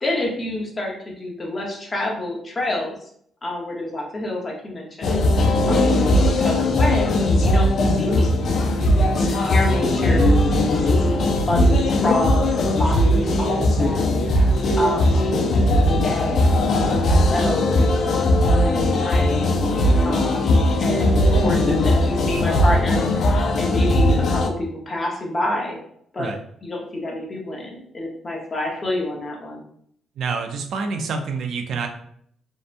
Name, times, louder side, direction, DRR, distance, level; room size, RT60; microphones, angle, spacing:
voice 1, 0.0-3.1 3.4-7.1 7.4-8.5 9.2-10.3 10.6-12.5 12.8-15.4 16.0-17.9 18.2-19.3 20.0-25.8 26.1-26.3 26.6-29.6, left 1 dB, 30° left, -1 dB, 0.8 m, -28 dB
sound 1, 5.0-24.5, left 1 dB, 60° left, 0.4 m, -19 dB
voice 2, 30.2-31.9, right 4 dB, 70° right, 5 dB, 0.4 m, -27 dB
2.7 x 2.1 x 2.5 m, 0.67 s
cardioid pair, 90°, 0 cm